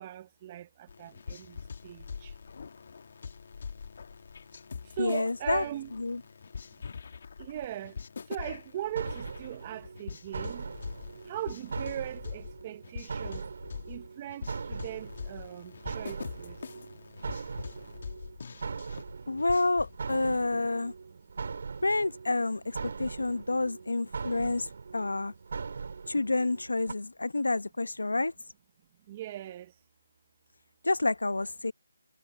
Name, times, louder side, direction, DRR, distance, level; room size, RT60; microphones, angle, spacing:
voice 1, 0.0-1.6 1.8-2.3 5.0-5.9 7.4-8.0 8.3-10.7 11.3-13.5 13.9-16.6 29.1-29.7, right 12 dB, 20° right, 0.7 m, -39 dB
sound 1, 0.9-20.0, left 5 dB, 40° left, 2.0 m, -43 dB
voice 2, 5.0-5.6 6.0-6.2 19.3-20.9 21.8-24.7 24.9-25.3 26.1-28.3 30.8-31.7, left 2 dB, 90° left, 0.8 m, -29 dB
sound 2, 8.9-26.9, right 5 dB, 45° right, 2.9 m, -41 dB
figure-of-eight pair, 175°, 0 cm